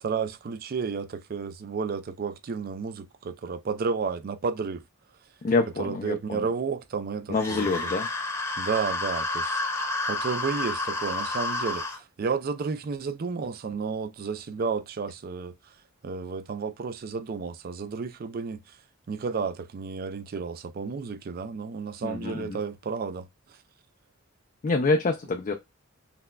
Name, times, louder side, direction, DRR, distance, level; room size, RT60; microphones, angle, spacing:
voice 1, 0.0-4.8 5.8-7.9 8.6-9.6 10.1-15.7 16.0-18.8 19.1-23.6, right 5 dB, 45° right, 0.4 m, -32 dB
voice 2, 5.4-6.5 7.3-8.1 22.0-22.6 24.6-25.5, left 3 dB, 35° left, 0.4 m, -26 dB
sound 1, 7.4-12.0, left 2 dB, 15° left, 0.8 m, -30 dB
5.8 x 2.1 x 2.2 m
head